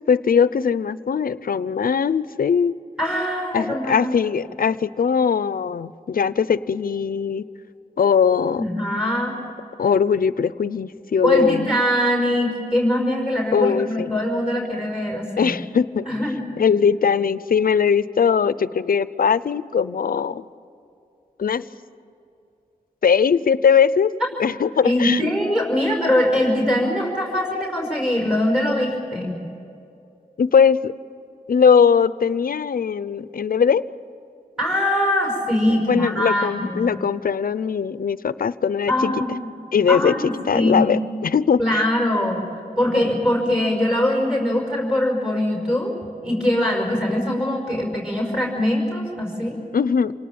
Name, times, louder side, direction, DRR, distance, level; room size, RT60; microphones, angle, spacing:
voice 1, 0.1-2.8 3.5-7.4 8.0-8.6 9.8-11.7 13.5-14.1 15.4-16.1 16.6-20.4 21.4-21.7 23.0-24.1 24.4-25.3 30.4-30.9 31.5-33.8 35.7-39.1 39.7-41.8 49.7-50.1, left 6 dB, 70° left, 16 dB, 0.7 m, -20 dB
voice 2, 3.0-4.2 8.6-9.4 11.2-15.5 16.1-16.4 24.8-29.4 34.6-36.9 38.9-39.5 39.9-40.9 41.6-42.4 42.8-45.9 46.2-49.6, left 1 dB, 5° right, 0 dB, 5.5 m, -22 dB
27.0 x 18.5 x 8.8 m, 2.7 s
wide cardioid pair, 80°, 16 cm